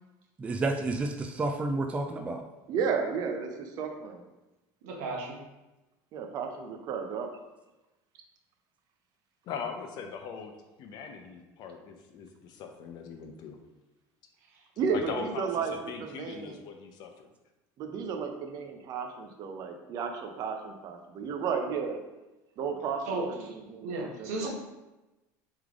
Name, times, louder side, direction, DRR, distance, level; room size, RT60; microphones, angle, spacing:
voice 1, 0.4-2.4, right 2 dB, 15° right, 4 dB, 0.3 m, -30 dB
voice 2, 2.7-4.2 6.1-7.3 14.8-16.6 17.8-22.0 22.6-24.5, right 6 dB, 50° right, 4 dB, 0.7 m, -33 dB
voice 3, 4.8-5.4 23.0-23.5 23.8-24.5, right 2 dB, 90° right, -1 dB, 1.1 m, -34 dB
voice 4, 9.4-10.5 10.8-13.6 14.9-17.3, left 6 dB, 55° left, 5 dB, 0.6 m, -40 dB
3.6 x 3.3 x 3.6 m, 1.0 s
cardioid pair, 130°, 9 cm